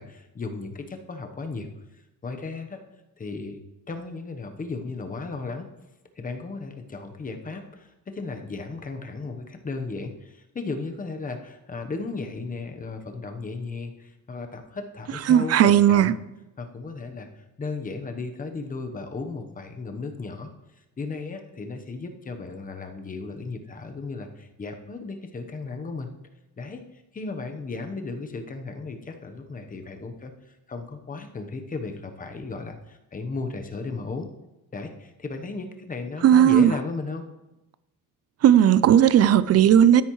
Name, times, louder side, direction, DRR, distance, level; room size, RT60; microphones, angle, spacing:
voice 1, 0.0-1.7 2.2-2.8 3.2-3.6 3.9-5.7 6.2-16.1 16.6-20.5 21.0-26.1 26.6-34.3 34.7-37.2, left 3 dB, 25° left, 5 dB, 1.0 m, -35 dB
voice 2, 15.2-16.1 36.2-36.8 38.4-40.0, right 10 dB, 50° right, 17 dB, 0.4 m, -16 dB
12.5 x 10.0 x 3.1 m, 0.96 s
cardioid pair, 155°, 33 cm